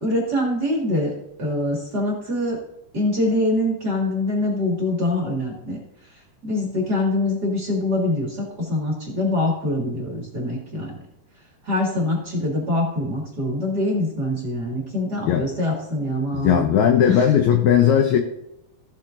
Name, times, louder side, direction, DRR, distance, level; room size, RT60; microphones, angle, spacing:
voice 1, 0.0-2.6 2.9-5.8 6.4-11.0 11.6-16.7 17.1-17.3, left 1 dB, 35° right, -2 dB, 1.9 m, -24 dB
voice 2, 16.3-18.2, left 9 dB, 85° left, 4 dB, 1.6 m, -17 dB
15.5 x 7.5 x 2.6 m, 0.83 s
omnidirectional pair, 4.4 m